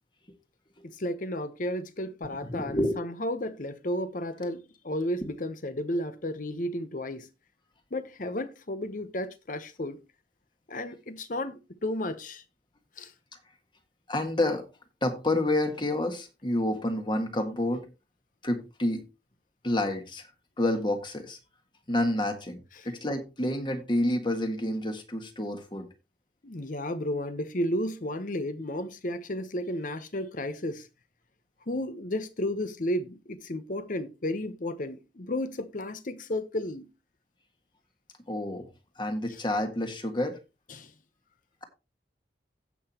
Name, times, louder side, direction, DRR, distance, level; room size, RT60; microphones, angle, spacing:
voice 1, 0.8-7.3 7.9-10.0 10.7-12.4 13.0-13.1 22.8-22.9 26.4-30.9 31.7-36.9 40.7-40.9, left 1 dB, 50° left, 0.9 m, -33 dB
voice 2, 2.4-3.0 14.1-14.7 15.0-17.9 18.4-19.0 19.6-20.3 20.6-21.4 21.9-25.9 38.3-40.4, left 1 dB, 25° left, 1.6 m, -29 dB
16.5 x 5.8 x 2.9 m
head